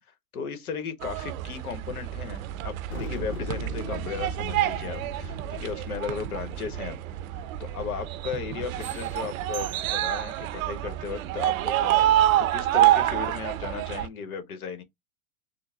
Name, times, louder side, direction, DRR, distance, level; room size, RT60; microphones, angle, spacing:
voice 1, 0.3-7.0 7.6-14.8, left 6 dB, 90° left, 1.1 m, -36 dB
sound 1, 1.0-14.1, right 13 dB, 70° right, 0.6 m, -27 dB
sound 2, 2.9-7.6, left 5 dB, 40° left, 1.8 m, -40 dB
sound 3, 8.8-10.5, right 12 dB, 25° right, 0.4 m, -44 dB
3.9 x 2.1 x 3.4 m
hypercardioid pair, 120°, 43 cm